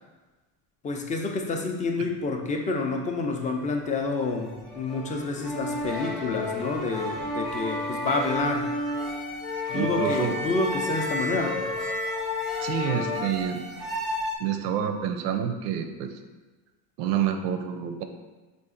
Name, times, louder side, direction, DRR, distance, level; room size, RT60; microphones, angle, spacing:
voice 1, 0.8-8.8 9.7-11.8, left 3 dB, 20° left, 3 dB, 0.3 m, -29 dB
sound 1, 3.9-14.4, equal, ahead, 0.7 m, -33 dB
Wind instrument woodwind instrument, 9.4-13.3, left 5 dB, 75° left, 0.8 m, -32 dB
voice 2, 9.7-10.4 12.6-13.6 14.4-16.1 17.0-18.0, right 8 dB, 90° right, 6 dB, 0.5 m, -28 dB
3.9 x 2.5 x 3.7 m, 1.2 s
supercardioid pair, 100°, 45 cm